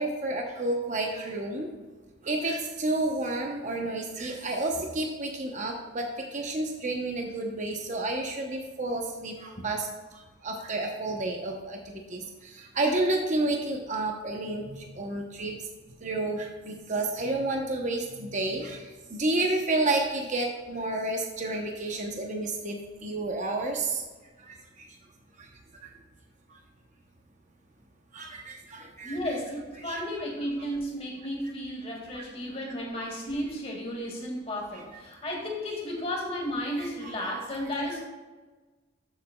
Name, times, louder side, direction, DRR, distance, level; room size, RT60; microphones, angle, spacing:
voice 1, 0.0-1.7 2.2-15.6 16.0-24.0 24.4-25.0 25.4-25.5 25.8-25.9 26.5-26.6 28.1-29.3 29.8-30.0 32.1-32.3 32.7-32.8 34.7-34.9 36.8-37.1 37.5-38.0, right 2 dB, 35° right, 2 dB, 0.8 m, -31 dB
voice 2, 29.0-38.0, equal, 30° left, -2 dB, 2.0 m, -33 dB
12.5 x 7.2 x 2.3 m, 1.3 s
head